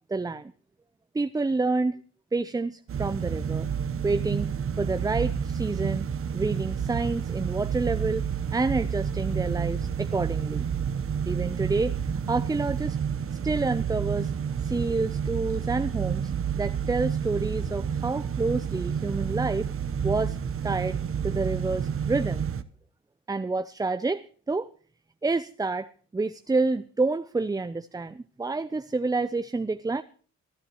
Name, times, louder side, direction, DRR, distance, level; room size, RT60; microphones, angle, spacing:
voice 1, 0.1-0.5 1.1-2.0 2.3-3.7 4.0-6.1 6.3-10.7 11.3-12.0 12.3-13.0 13.4-14.3 14.6-19.7 20.0-20.4 20.6-21.0 21.2-22.5 23.3-24.7 25.2-30.0, right 3 dB, 10° right, 12 dB, 0.6 m, -28 dB
sound 1, 2.9-22.6, right 7 dB, 45° right, 1.0 m, -30 dB
26.0 x 11.5 x 3.1 m, 0.42 s
cardioid pair, 90°, 30 cm